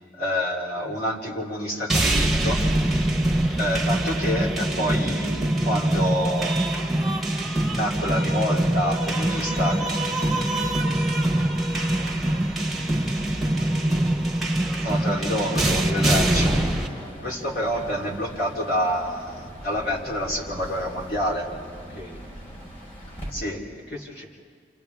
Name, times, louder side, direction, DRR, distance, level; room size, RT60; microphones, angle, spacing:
voice 1, 0.2-2.6 3.6-6.7 7.7-10.0 14.8-16.7 17.2-21.5 23.3-23.6, equal, 60° left, -2 dB, 3.5 m, -28 dB
sound 1, 1.9-16.9, right 1 dB, ahead, 1.2 m, -23 dB
sound 2, 9.5-23.3, equal, 40° left, 4.6 m, -38 dB
voice 2, 13.7-14.1 21.9-22.3 23.5-24.3, left 1 dB, 80° left, -3 dB, 3.5 m, -42 dB
29.5 x 27.5 x 3.6 m, 2.1 s
head